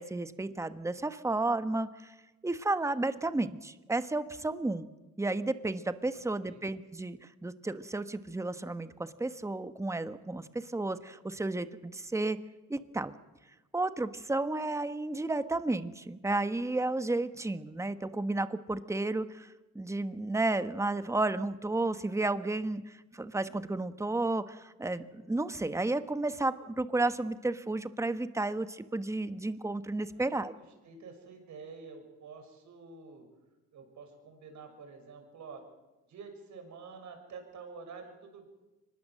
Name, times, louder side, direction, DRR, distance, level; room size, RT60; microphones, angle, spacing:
voice 1, 0.0-2.1 2.4-4.9 5.2-12.4 12.7-13.1 13.7-30.5, right 2 dB, 10° right, 11 dB, 1.2 m, -32 dB
voice 2, 30.1-33.2 33.7-35.6 36.1-38.5, right 5 dB, 70° right, 5 dB, 6.4 m, -48 dB
24.0 x 20.0 x 7.6 m, 1.1 s
cardioid pair, 90°, 30 cm